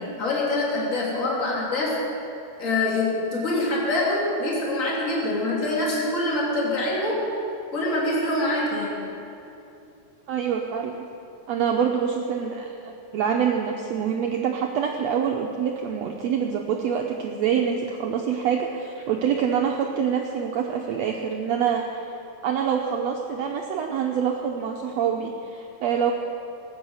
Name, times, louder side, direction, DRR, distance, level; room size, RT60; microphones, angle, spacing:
voice 1, 0.0-2.0 2.6-7.2 7.7-9.0, left 2 dB, 25° left, -4 dB, 2.8 m, -25 dB
voice 2, 10.3-11.0 11.5-21.9 22.4-26.1, right 7 dB, 80° right, 1 dB, 1.5 m, -26 dB
19.5 x 9.0 x 6.5 m, 2.7 s
omnidirectional pair, 4.0 m